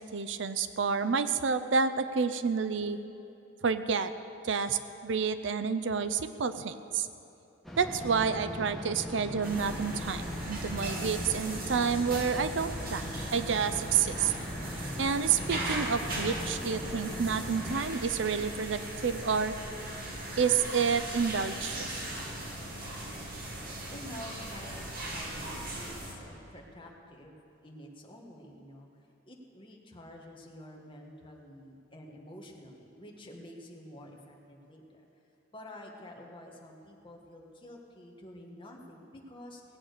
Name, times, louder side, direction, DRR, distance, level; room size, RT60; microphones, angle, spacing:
voice 1, 0.1-3.0 3.6-4.1 4.4-7.1 7.8-14.3 15.0-19.6 20.4-21.9, right 6 dB, 65° right, 11 dB, 0.5 m, -29 dB
sound 1, 7.6-17.8, equal, ahead, 1.2 m, -40 dB
sound 2, 9.4-26.1, right 1 dB, 50° right, 2.1 m, -38 dB
voice 2, 23.9-27.3 27.6-28.9 29.3-35.0 35.5-39.6, left 1 dB, 25° left, 0 dB, 1.6 m, -49 dB
17.5 x 8.8 x 6.6 m, 2.9 s
head